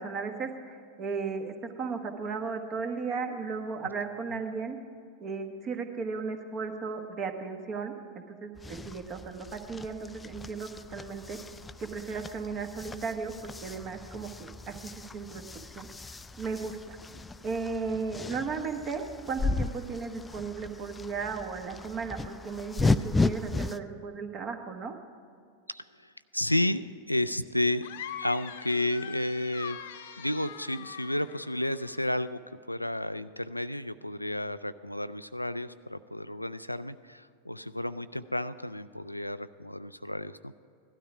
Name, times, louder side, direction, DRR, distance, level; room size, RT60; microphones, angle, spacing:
voice 1, 0.0-4.8 5.2-7.9 8.3-11.4 11.8-15.4 15.7-17.0 17.4-25.0, right 5 dB, 30° right, 6 dB, 1.3 m, -35 dB
Cows muching, 8.6-23.8, left 3 dB, 10° left, 0.3 m, -35 dB
voice 2, 25.7-27.9 28.2-29.8 30.2-32.4 32.7-40.6, left 1 dB, 85° left, 13 dB, 0.3 m, -32 dB
sound 1, 27.8-32.2, left 9 dB, 55° left, 0.8 m, -43 dB
16.0 x 12.5 x 4.9 m, 2.3 s
figure-of-eight pair, 90°, 0 cm